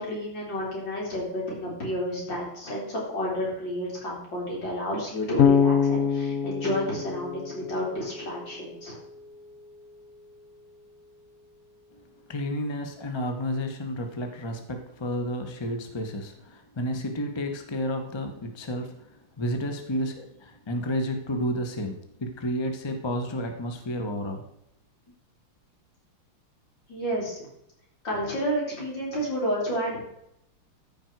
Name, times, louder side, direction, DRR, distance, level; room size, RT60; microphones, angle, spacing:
voice 1, 0.0-9.0 26.9-27.5 28.0-30.0, equal, 60° left, -3 dB, 4.0 m, -30 dB
Bass guitar, 5.4-8.4, left 7 dB, 75° left, 0.7 m, -24 dB
voice 2, 12.3-24.5, equal, 30° left, 5 dB, 0.5 m, -31 dB
14.0 x 5.4 x 4.6 m, 0.79 s
omnidirectional pair, 2.3 m